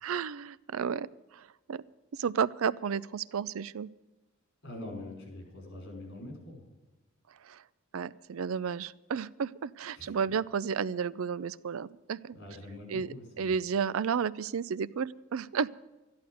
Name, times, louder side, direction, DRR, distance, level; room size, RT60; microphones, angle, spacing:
voice 1, 0.0-1.1 1.7-1.8 2.2-3.9 7.9-12.3 12.9-15.7, right 6 dB, 70° right, 20 dB, 0.4 m, -32 dB
voice 2, 4.6-6.7 9.9-10.2 12.3-13.5, left 1 dB, 55° left, 2 dB, 5.1 m, -44 dB
13.0 x 11.5 x 7.8 m, 1.1 s
head